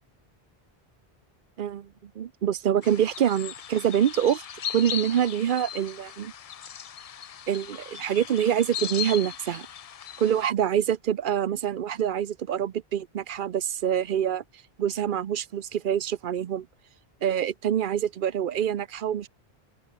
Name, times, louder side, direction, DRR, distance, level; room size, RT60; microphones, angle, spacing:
voice 1, 1.6-1.9 2.2-4.4 4.7-6.3 7.5-9.7 10.2-14.4 14.8-16.7 17.2-19.3, right 9 dB, 60° right, 0.7 m, -26 dB
sound 1, 2.8-10.5, left 9 dB, 50° left, 0.4 m, -38 dB
open air
omnidirectional pair, 1.1 m